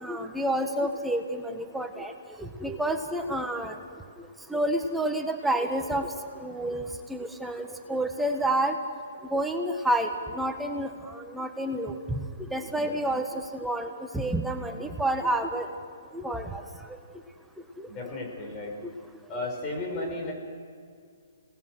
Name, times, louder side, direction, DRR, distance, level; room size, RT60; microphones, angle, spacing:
voice 1, 0.0-2.1 2.4-3.7 4.5-6.1 6.4-6.8 7.1-8.7 9.3-10.9 11.1-12.2 12.5-15.7 16.1-16.6 19.9-20.0, right 1 dB, 5° right, 4 dB, 1.4 m, -29 dB
voice 2, 17.9-18.7 19.3-20.3, left 2 dB, 25° left, 0 dB, 6.0 m, -34 dB
28.5 x 18.5 x 6.5 m, 2.2 s
hypercardioid pair, 135°, 0 cm